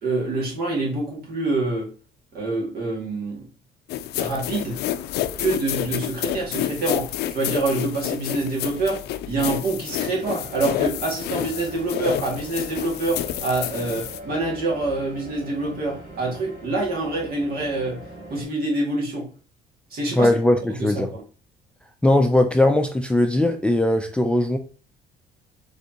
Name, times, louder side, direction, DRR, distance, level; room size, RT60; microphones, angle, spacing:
voice 1, 0.0-1.9 2.3-3.5 4.2-4.8 5.4-18.0 18.3-19.3 19.9-20.3 20.8-21.2, right 2 dB, 65° right, 2.0 m, -26 dB
sound 1, 3.9-14.2, left 12 dB, 75° left, 0.4 m, -29 dB
sound 2, 9.9-18.4, right 1 dB, 85° right, 1.8 m, -41 dB
voice 2, 20.2-21.1 22.0-24.6, left 1 dB, 5° left, 0.4 m, -19 dB
5.1 x 3.5 x 2.9 m
cardioid pair, 110°, 17 cm